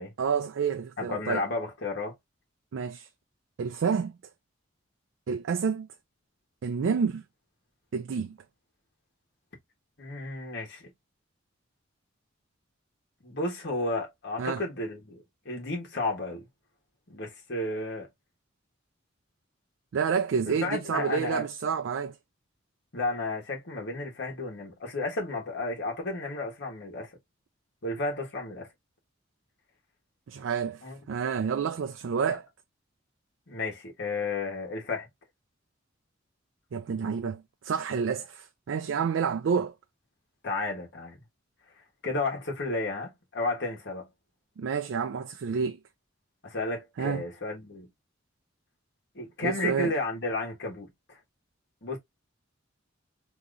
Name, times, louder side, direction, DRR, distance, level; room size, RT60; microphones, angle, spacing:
voice 1, 0.2-1.4 2.7-3.1 3.6-4.2 5.3-5.9 6.6-7.2 7.9-8.4 14.4-14.6 19.9-22.2 30.3-30.8 31.1-32.5 36.7-39.7 44.6-45.8 47.0-47.2 49.4-49.9, right 6 dB, 70° right, 0.4 m, -29 dB
voice 2, 1.0-2.1 10.0-10.9 13.2-16.4 17.1-18.1 20.6-21.4 22.9-27.1 27.8-28.7 30.8-31.0 33.5-35.1 40.4-41.2 42.0-44.1 46.4-47.9 49.1-50.9 51.8-52.0, left 2 dB, 65° left, 1.4 m, -32 dB
3.7 x 2.9 x 2.4 m
head